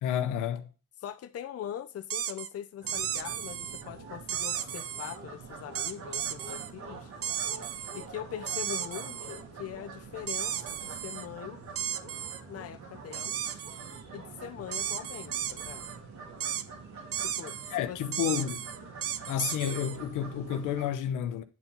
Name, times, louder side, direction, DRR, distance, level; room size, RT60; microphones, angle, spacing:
voice 1, 0.0-0.7 17.7-18.6 19.3-21.4, left 9 dB, 85° left, 0.9 m, -30 dB
voice 2, 1.0-7.1 7.9-11.6 12.5-13.6 14.1-15.8 17.2-18.0, left 10 dB, 55° left, 0.7 m, -42 dB
sound 1, 2.1-2.5 2.9-3.8 4.3-5.2 5.7-6.7 7.2-8.1 8.5-9.4 10.3-11.3 11.8-12.4 13.1-14.0 14.7-16.0 16.4-16.6 17.1-17.7 18.1-20.0, right 10 dB, 50° right, 0.6 m, -34 dB
sound 2, 2.8-20.9, right 4 dB, 75° right, 3.2 m, -46 dB
9.7 x 4.5 x 5.3 m
cardioid pair, 90°, 30 cm